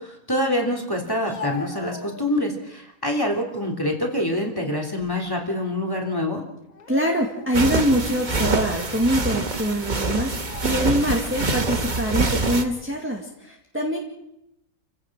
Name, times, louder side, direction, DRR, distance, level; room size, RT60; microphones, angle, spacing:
voice 1, 0.0-6.4, left 1 dB, 15° left, 2 dB, 3.2 m, -26 dB
Speech, 1.0-2.7 3.2-3.8 4.2-5.4 5.7-5.9 6.7-7.7 8.2-8.4 9.2-9.4 10.2-10.9 11.7-12.4, left 6 dB, 75° left, 2.2 m, -41 dB
voice 2, 6.9-10.3 10.6-14.0, equal, 10° right, 0 dB, 2.0 m, -24 dB
sound 1, 7.5-12.6, right 3 dB, 35° right, 1.5 m, -25 dB
29.0 x 16.0 x 6.1 m, 0.83 s
omnidirectional pair, 1.5 m